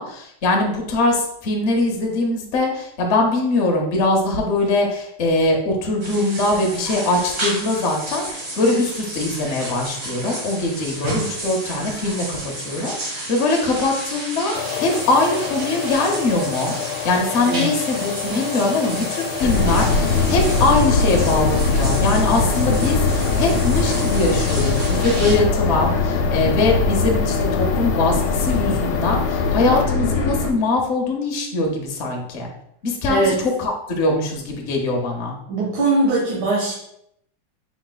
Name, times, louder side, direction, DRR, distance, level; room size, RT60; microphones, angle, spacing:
voice 1, 0.0-16.7 17.0-32.5 32.8-33.3 33.6-35.4, left 2 dB, 55° left, 1 dB, 0.8 m, -22 dB
sound 1, 6.0-25.4, right 1 dB, 40° right, 1.1 m, -31 dB
sound 2, 14.5-29.9, left 10 dB, 90° left, 1.5 m, -30 dB
voice 2, 17.4-17.8 33.1-33.4 35.5-36.7, right 2 dB, 75° right, -5 dB, 1.7 m, -20 dB
sound 3, 19.4-30.5, left 3 dB, 75° left, 1.2 m, -21 dB
4.6 x 4.0 x 2.2 m, 0.75 s
omnidirectional pair, 2.3 m